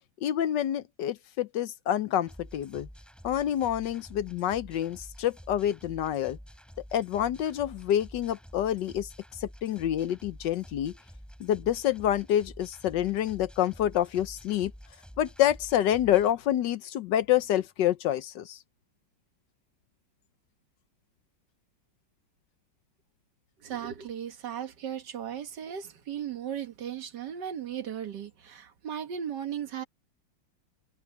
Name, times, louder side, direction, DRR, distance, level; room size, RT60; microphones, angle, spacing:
voice 1, 0.2-2.9 3.2-6.4 6.9-9.1 9.4-10.9 11.4-14.7 15.2-18.6, left 11 dB, 70° left, 1.3 m, -27 dB
sound 1, 2.3-16.3, equal, ahead, 4.9 m, -49 dB
voice 2, 23.6-29.8, right 9 dB, 65° right, 1.9 m, -36 dB
omnidirectional pair, 2.1 m